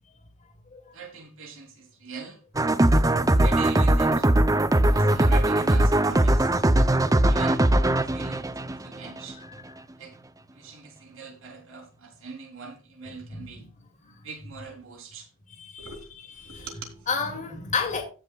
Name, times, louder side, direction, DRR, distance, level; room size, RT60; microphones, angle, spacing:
voice 1, 0.9-2.4 3.4-4.3 4.9-6.5 7.3-7.6 8.0-9.4 10.0-10.1 10.5-13.7 14.2-15.3 15.8-17.1, right 5 dB, 65° right, 3.7 m, -42 dB
sound 1, 2.6-9.3, right 1 dB, 15° right, 0.6 m, -20 dB
voice 2, 6.7-7.4 7.9-8.3 9.4-9.6 13.3-13.7 14.0-14.1 15.5-15.9 16.3-16.7 17.1-18.0, left 4 dB, 35° left, 2.4 m, -33 dB
16.5 x 7.1 x 2.4 m
head